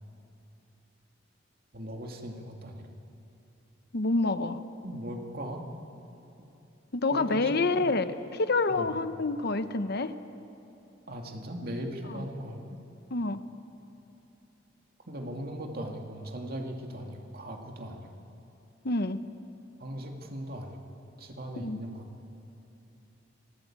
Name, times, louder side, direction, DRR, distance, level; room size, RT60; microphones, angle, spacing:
voice 1, 1.7-2.9 4.8-5.7 7.1-7.5 7.8-7.9 8.7-8.9 11.1-12.6 15.1-18.1 19.8-20.8 21.2-22.1, equal, 55° right, 2 dB, 2.4 m, -38 dB
voice 2, 3.9-4.6 6.9-10.1 12.0-12.3 13.1-13.4 18.8-19.2 21.6-21.8, left 3 dB, 60° left, 11 dB, 0.9 m, -28 dB
27.0 x 18.5 x 8.9 m, 2.9 s
head